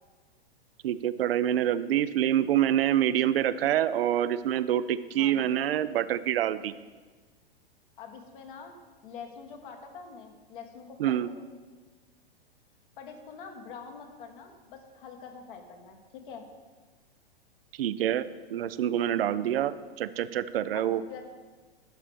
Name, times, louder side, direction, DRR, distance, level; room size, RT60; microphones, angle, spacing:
voice 1, 0.8-6.7 11.0-11.3 17.7-21.0, right 11 dB, 70° right, 15 dB, 0.5 m, -26 dB
voice 2, 5.2-5.6 8.0-8.7 9.0-11.4 13.0-16.4 20.7-21.2, left 6 dB, 55° left, 4 dB, 1.3 m, -45 dB
11.5 x 5.9 x 3.4 m, 1.3 s
hypercardioid pair, 110°, 30 cm